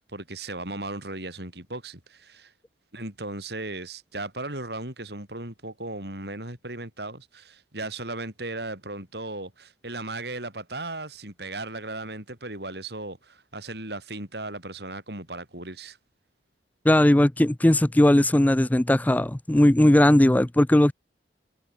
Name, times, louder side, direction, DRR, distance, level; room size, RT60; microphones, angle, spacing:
voice 1, 0.0-2.5 2.9-16.0, right 2 dB, 65° right, 6.6 m, -36 dB
voice 2, 16.9-20.9, left 1 dB, 10° left, 0.4 m, -18 dB
head